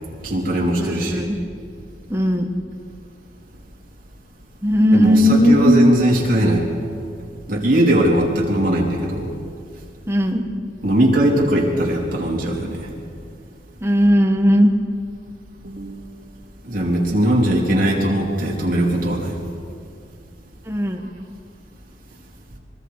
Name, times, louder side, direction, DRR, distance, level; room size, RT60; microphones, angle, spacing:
voice 1, 0.2-1.2 4.9-6.7 7.5-9.3 10.8-12.9 15.6-16.2 16.6-19.3, right 1 dB, 45° right, -3 dB, 3.6 m, -19 dB
voice 2, 0.8-1.4 2.1-2.5 4.6-5.7 10.1-10.4 13.8-14.7 20.7-21.1, equal, 15° right, 3 dB, 1.4 m, -17 dB
25.0 x 22.5 x 4.9 m, 2.3 s
head